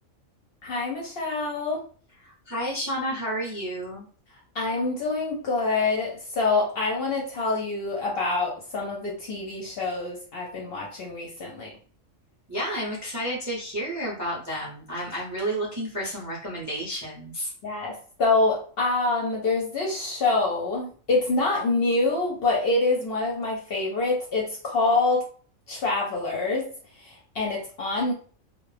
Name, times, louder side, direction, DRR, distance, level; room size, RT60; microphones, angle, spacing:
voice 1, 0.6-1.8 4.5-11.7 17.6-25.2 25.7-26.7 27.0-28.1, left 3 dB, 60° left, -1 dB, 0.7 m, -26 dB
voice 2, 2.2-4.0 12.5-17.5, equal, 25° right, -4 dB, 0.4 m, -31 dB
2.2 x 2.0 x 3.2 m, 0.43 s
omnidirectional pair, 1.4 m